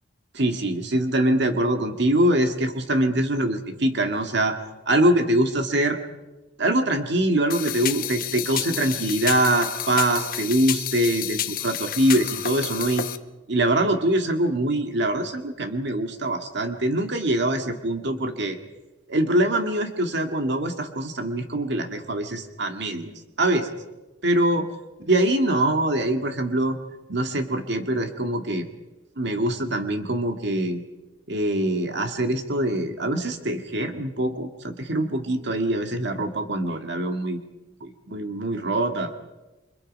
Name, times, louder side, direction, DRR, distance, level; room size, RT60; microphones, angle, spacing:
voice 1, 0.3-4.6 4.9-6.0 6.6-13.1 13.5-18.6 19.1-23.1 23.4-23.7 24.2-24.7 25.1-26.8 27.1-28.7 29.2-30.8 31.3-37.4 37.8-39.1, right 1 dB, 60° right, 5 dB, 2.0 m, -23 dB
sound 1, 7.5-13.2, left 10 dB, 50° left, 1.2 m, -30 dB
30.0 x 25.0 x 5.4 m, 1.1 s
head